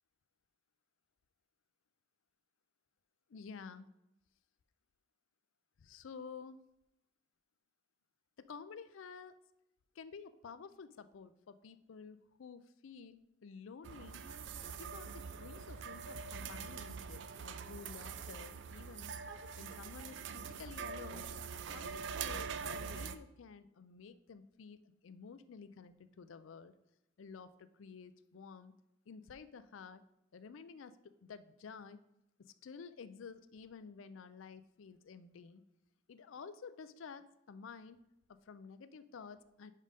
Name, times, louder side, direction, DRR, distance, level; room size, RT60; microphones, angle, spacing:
voice 1, 3.3-3.9 5.8-6.6 8.4-9.4 9.9-14.2 14.7-19.2 19.6-26.7 27.2-28.7 29.1-30.0 30.3-32.0 32.4-35.6 36.1-38.0 38.3-39.7, left 5 dB, 80° left, 13 dB, 0.4 m, -52 dB
sound 1, 13.8-23.2, right 6 dB, 60° right, 0.4 m, -44 dB
5.4 x 5.4 x 5.1 m, 0.86 s
head